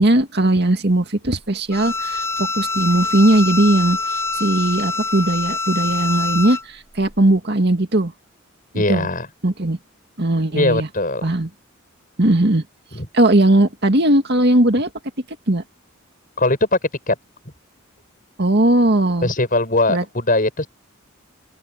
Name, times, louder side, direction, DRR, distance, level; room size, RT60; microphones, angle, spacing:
voice 1, 0.0-4.0 4.3-8.1 8.7-9.1 9.4-9.8 10.2-10.9 11.2-11.5 12.2-12.6 13.1-14.9 15.5-15.6 18.4-19.3 19.9-20.0, right 1 dB, 55° right, 2.1 m, -18 dB
Bowed string instrument, 1.7-6.6, left 3 dB, 15° left, 5.1 m, -25 dB
voice 2, 8.7-9.3 10.5-11.2 12.9-13.1 16.4-16.8 17.1-17.2 19.2-20.7, left 2 dB, 40° left, 7.7 m, -20 dB
open air
head